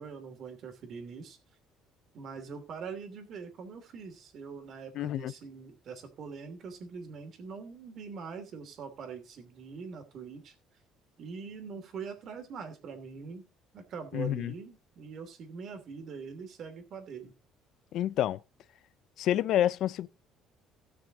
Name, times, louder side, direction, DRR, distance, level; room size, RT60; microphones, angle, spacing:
voice 1, 0.0-1.4 2.1-10.5 11.2-13.4 13.7-17.3, right 5 dB, 50° right, 2.8 m, -43 dB
voice 2, 5.0-5.3 14.1-14.5 17.9-18.4 19.2-20.1, left 12 dB, 65° left, 0.6 m, -28 dB
17.0 x 6.3 x 3.8 m
cardioid pair, 125°, 0 cm